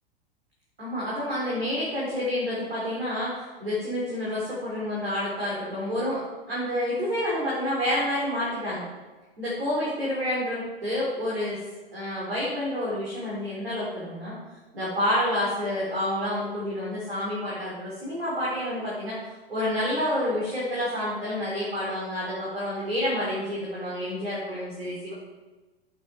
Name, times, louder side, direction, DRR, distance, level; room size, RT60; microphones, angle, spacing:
voice 1, 0.8-6.2 6.5-8.8 9.4-11.6 11.9-14.3 14.7-19.2 19.5-25.1, left 1 dB, 75° right, -7 dB, 4.4 m, -29 dB
12.0 x 8.8 x 4.7 m, 1.2 s
figure-of-eight pair, 95°, 30 cm